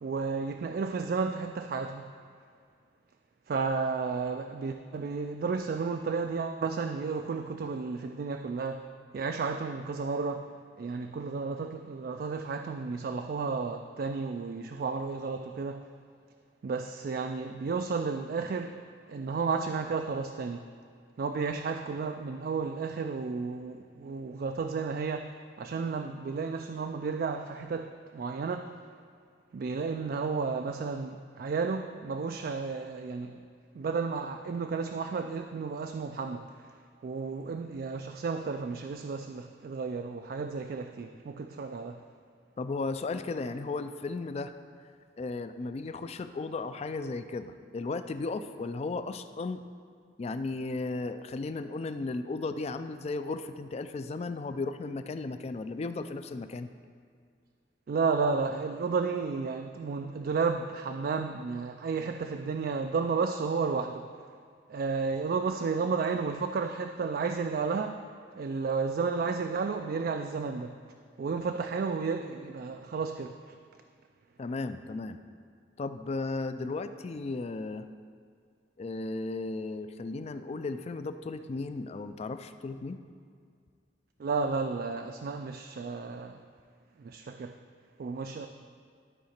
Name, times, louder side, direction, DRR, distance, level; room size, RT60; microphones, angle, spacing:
voice 1, 0.0-2.1 3.5-8.9 9.1-10.5 10.8-15.9 16.6-18.8 19.1-20.7 21.2-28.7 29.5-33.4 33.7-36.7 37.0-42.0 57.9-64.1 64.7-68.0 68.4-70.8 71.2-73.6 84.2-86.4 87.0-87.5 88.0-88.5, right 4 dB, 55° right, 6 dB, 0.3 m, -32 dB
voice 2, 42.6-44.5 45.2-49.6 50.2-56.7 74.4-75.2 75.8-77.9 78.8-83.0, left 3 dB, 35° left, 11 dB, 0.3 m, -35 dB
12.0 x 4.8 x 4.4 m, 2.2 s
head